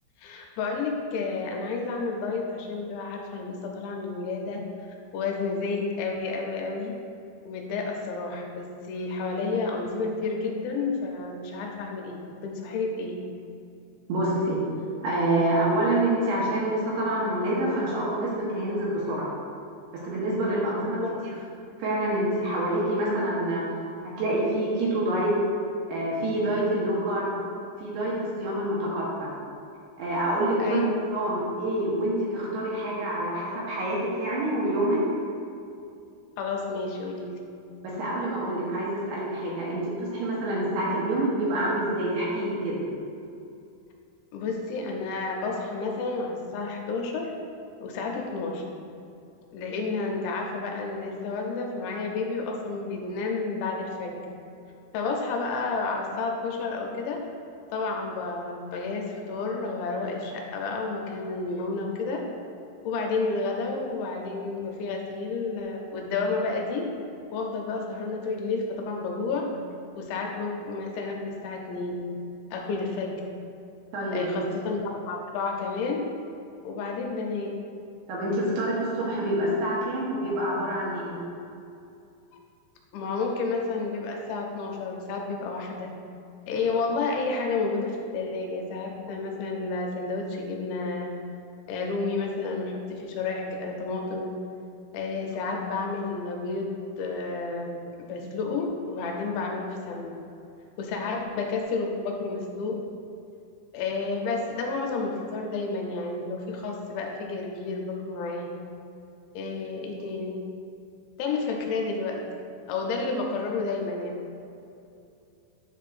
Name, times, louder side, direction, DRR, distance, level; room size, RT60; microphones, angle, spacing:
voice 1, 0.2-4.6 5.1-6.9 7.5-13.2 20.9-21.2 30.6-31.2 36.4-37.4 44.3-47.3 47.8-48.6 49.5-54.2 54.9-57.2 57.7-62.2 62.8-66.9 67.3-69.5 70.0-72.1 72.5-73.2 74.1-76.2 76.6-77.6 82.9-85.9 86.5-91.1 91.7-94.3 94.9-100.2 100.8-102.8 103.7-108.5 109.3-110.4 111.2-112.2 112.7-114.2, left 3 dB, 80° left, 1 dB, 2.9 m, -31 dB
voice 2, 14.1-14.6 15.0-19.3 19.9-21.0 21.8-23.6 24.0-25.3 25.9-27.4 27.8-29.4 30.0-35.0 37.8-42.8 73.9-74.4 78.1-81.2, right 1 dB, 70° right, -6 dB, 2.8 m, -27 dB
9.7 x 5.4 x 2.5 m, 2.6 s
omnidirectional pair, 5.3 m